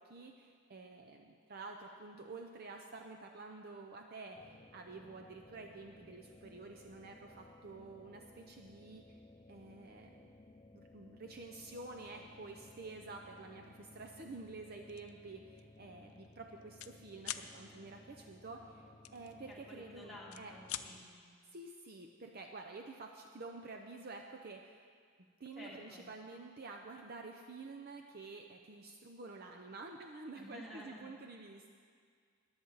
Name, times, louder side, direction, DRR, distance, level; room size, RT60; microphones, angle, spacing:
voice 1, 0.0-9.2 9.5-10.3 10.7-20.5 21.5-24.8 25.4-31.7, right 3 dB, 45° right, 2 dB, 0.6 m, -50 dB
sound 1, 4.4-21.1, left 2 dB, 25° left, 0.5 m, -59 dB
sound 2, 14.9-15.1 15.6-15.8 16.0-16.9 17.2-17.5 19.0-19.8 20.2-20.9, left 12 dB, 80° left, 0.5 m, -43 dB
voice 2, 19.5-21.2 25.6-26.0 30.4-31.1, left 1 dB, ahead, -6 dB, 2.2 m, -52 dB
21.0 x 7.9 x 4.0 m, 2.1 s
head